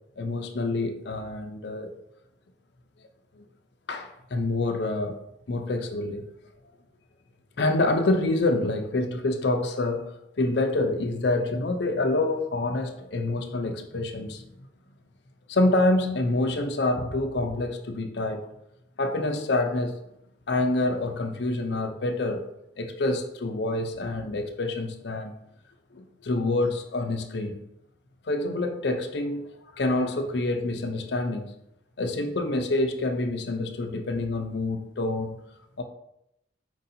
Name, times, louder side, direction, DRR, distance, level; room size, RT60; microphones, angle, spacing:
voice 1, 0.2-1.9 3.4-3.5 3.9-5.2 5.5-6.3 7.6-10.1 10.4-14.4 15.5-18.5 19.0-20.0 20.5-22.5 22.8-25.3 25.9-27.6 28.3-29.5 29.7-31.5 32.0-35.4 35.8-35.9, left 2 dB, 60° left, 0.5 m, -27 dB
4.5 x 2.7 x 4.1 m
head